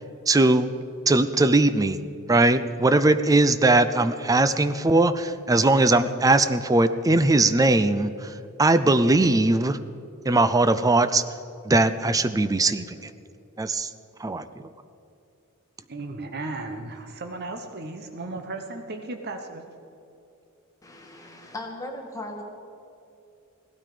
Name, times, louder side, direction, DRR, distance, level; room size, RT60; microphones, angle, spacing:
voice 1, 0.3-0.7 1.1-2.0 2.3-9.8 10.3-11.2 11.7-13.1 13.6-13.9 14.2-14.4, right 2 dB, 15° right, 12 dB, 0.4 m, -20 dB
voice 2, 15.9-19.6, right 2 dB, 50° right, 5 dB, 1.0 m, -35 dB
voice 3, 20.8-22.4, left 1 dB, 15° left, 1 dB, 1.8 m, -37 dB
17.0 x 12.5 x 5.0 m, 2.7 s
head